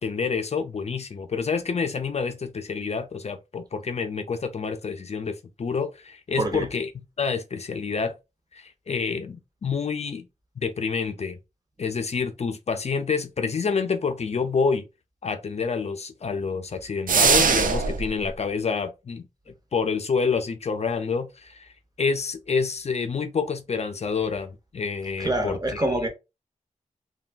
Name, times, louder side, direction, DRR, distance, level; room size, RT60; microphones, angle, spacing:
voice 1, 0.0-8.1 8.5-10.3 10.6-11.4 11.8-14.8 15.2-21.7 22.0-25.8, left 5 dB, 50° left, 0.4 m, -28 dB
voice 2, 6.4-6.7 25.2-26.1, right 1 dB, 30° right, 0.7 m, -26 dB
sound 1, 17.1-18.1, right 5 dB, 75° right, 0.4 m, -20 dB
3.2 x 2.2 x 2.4 m
wide cardioid pair, 95°, 14 cm